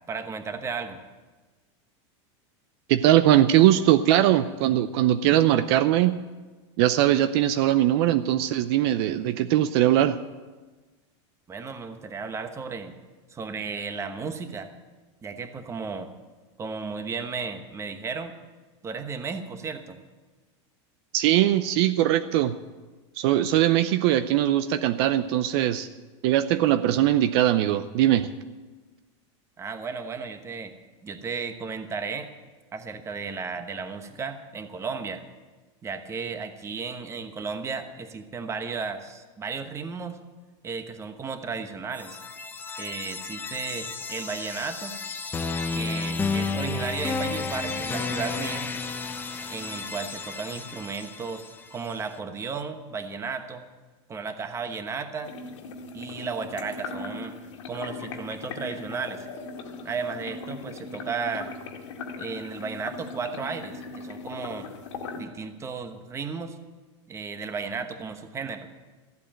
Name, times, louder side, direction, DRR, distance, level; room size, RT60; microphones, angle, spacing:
voice 1, 0.1-1.0 11.5-13.0 13.3-14.7 15.2-16.1 16.6-18.3 18.8-20.0 29.6-30.7 31.0-32.3 32.7-35.2 35.8-40.2 40.6-42.2 42.8-45.0 45.7-48.7 49.5-51.4 51.7-53.6 54.1-55.3 55.9-57.3 57.7-59.2 59.8-61.5 62.2-64.7 65.2-66.6 67.1-68.7, right 5 dB, 20° right, 8 dB, 1.1 m, -34 dB
voice 2, 2.9-6.2 6.8-10.2 21.1-22.5 23.2-25.9 26.2-28.3, right 13 dB, 60° right, 11 dB, 0.6 m, -21 dB
sound 1, 41.9-51.9, left 4 dB, 15° left, 0.8 m, -32 dB
sound 2, 55.2-65.2, left 4 dB, 85° left, 2.0 m, -39 dB
14.5 x 8.3 x 8.9 m, 1.3 s
supercardioid pair, 145°, 15 cm